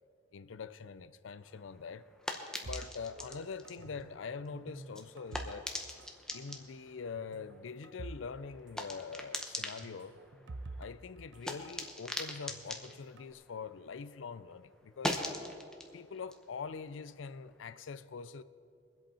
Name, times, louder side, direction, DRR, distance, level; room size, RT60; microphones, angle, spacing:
voice 1, 0.3-2.1 2.6-5.7 6.3-10.2 10.8-15.2 15.9-18.4, left 5 dB, 80° left, 0.5 m, -44 dB
sound 1, 1.4-14.2 14.5-17.7, left 1 dB, 5° left, 0.9 m, -43 dB
sound 2, 2.7-4.2 4.5-6.1 6.3-6.6 7.2-8.3 8.5-8.6 9.8-11.9 12.5-13.3, right 2 dB, 70° right, 0.6 m, -48 dB
23.0 x 8.0 x 4.3 m
head